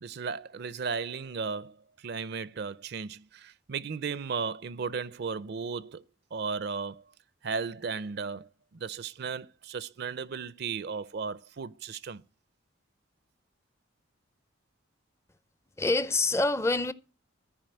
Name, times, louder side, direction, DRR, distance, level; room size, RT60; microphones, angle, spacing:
voice 1, 0.0-6.0 6.3-7.1 7.4-12.2, right 5 dB, 50° right, 0.4 m, -35 dB
voice 2, 15.8-16.9, left 2 dB, 15° left, 0.4 m, -26 dB
14.0 x 4.8 x 7.7 m
head